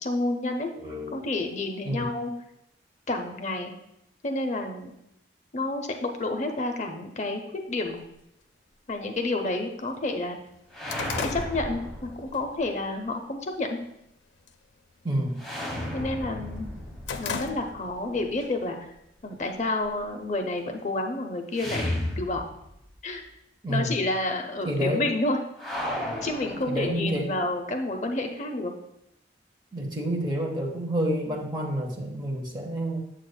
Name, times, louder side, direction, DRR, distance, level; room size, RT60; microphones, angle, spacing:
voice 1, 0.0-0.7 1.1-2.3 3.1-3.7 4.2-4.9 5.5-7.4 7.7-8.0 8.9-10.4 11.1-13.8 15.9-16.7 17.2-18.8 19.2-22.5 23.0-23.2 23.7-25.4 26.2-28.7, left 2 dB, 40° left, 4 dB, 0.6 m, -29 dB
voice 2, 0.8-1.3 1.8-2.1 15.0-15.4 23.6-24.0 24.6-25.0 26.7-27.3 29.7-33.0, right 1 dB, 25° right, -1 dB, 1.0 m, -29 dB
sound 1, 8.0-8.1 9.0-9.1 9.6-9.7 10.0-12.4 12.8-13.1 13.6-14.1 14.3-14.7 15.0-16.2 16.6-18.1 18.4-18.5 19.4-20.3, left 5 dB, 85° left, 0.5 m, -37 dB
sound 2, 10.7-12.7 15.4-18.4 21.5-22.9 23.2-23.3 25.6-27.3, left 1 dB, ahead, 1.0 m, -34 dB
7.7 x 6.5 x 2.2 m, 0.80 s
head